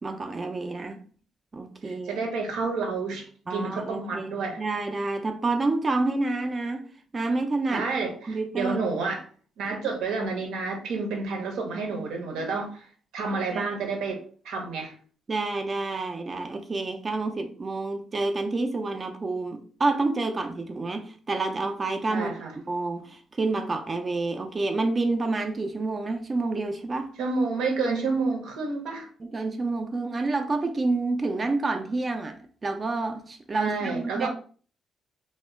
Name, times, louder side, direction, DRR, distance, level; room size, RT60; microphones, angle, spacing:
voice 1, 0.0-1.0 1.5-2.2 3.5-6.9 7.1-7.9 8.2-8.8 13.5-13.7 15.3-22.4 22.7-27.1 29.2-34.3, right 3 dB, 30° right, 0.3 m, -28 dB
voice 2, 1.8-4.6 7.7-9.2 9.6-12.9 13.1-14.9 22.1-22.5 27.2-29.1 33.5-34.3, right 4 dB, 90° right, 0.7 m, -29 dB
2.1 x 2.0 x 3.4 m
cardioid pair, 90°, 0 cm